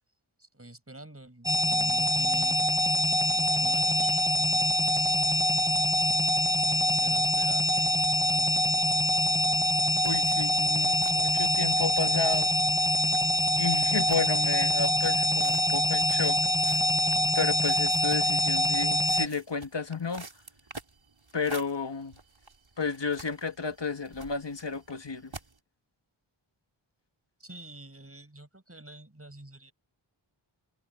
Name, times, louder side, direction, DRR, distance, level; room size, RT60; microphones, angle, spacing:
voice 1, 0.4-2.6 3.3-5.3 6.5-8.7 27.4-29.7, right 1 dB, 30° right, 7.6 m, -48 dB
sound 1, 1.5-19.3, left 1 dB, 10° right, 0.7 m, -25 dB
voice 2, 10.0-12.5 13.6-16.4 17.3-20.2 21.3-22.2 22.8-25.3, left 4 dB, 60° left, 2.0 m, -32 dB
sound 2, 10.0-25.6, right 3 dB, 65° right, 4.4 m, -50 dB
wide cardioid pair, 50°, 49 cm